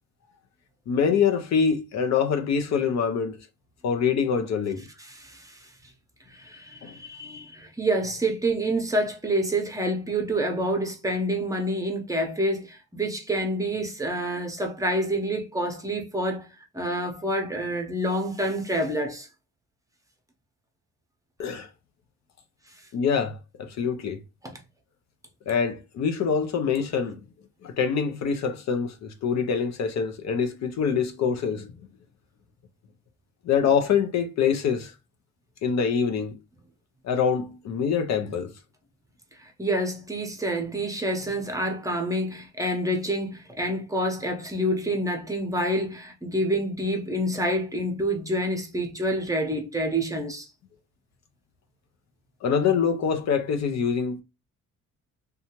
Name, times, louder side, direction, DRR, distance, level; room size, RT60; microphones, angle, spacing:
voice 1, 0.9-3.4 3.8-4.8 6.8-7.0 21.4-21.7 22.9-24.2 25.5-27.2 27.6-31.7 33.4-34.9 35.6-36.3 37.0-38.5 52.4-54.2, left 6 dB, 60° left, 0.6 m, -25 dB
voice 2, 4.8-5.7 6.3-16.5 16.7-19.3 24.4-24.6 39.4-50.5, right 1 dB, 10° right, 0.7 m, -28 dB
2.7 x 2.3 x 2.9 m
cardioid pair, 90°, 30 cm